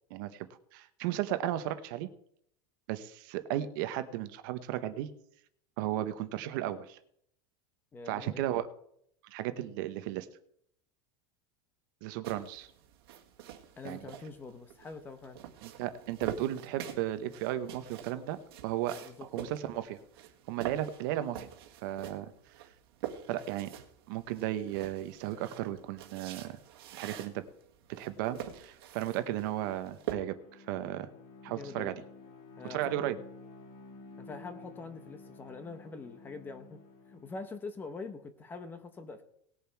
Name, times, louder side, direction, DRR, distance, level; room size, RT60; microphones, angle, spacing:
voice 1, 0.1-0.5 0.7-2.1 2.9-5.1 5.8-7.0 8.1-8.7 9.3-10.3 12.0-12.7 13.8-14.1 15.6-19.0 19.3-20.0 20.5-21.5 21.8-22.3 23.3-23.7 24.1-26.6 26.9-27.4 28.0-31.1 31.4-31.9 32.7-33.2, right 13 dB, 60° right, 11 dB, 0.9 m, -35 dB
voice 2, 7.9-8.4 13.8-15.4 18.9-19.5 31.5-31.9 32.6-33.1 34.2-36.8 37.1-39.2, left 4 dB, 15° left, 10 dB, 0.9 m, -44 dB
sound 1, 12.2-30.1, right 11 dB, 85° right, 1.8 m, -45 dB
Bowed string instrument, 29.9-37.6, left 3 dB, 55° left, 1.7 m, -52 dB
19.0 x 7.0 x 4.5 m, 0.70 s
supercardioid pair, 165°, 13 cm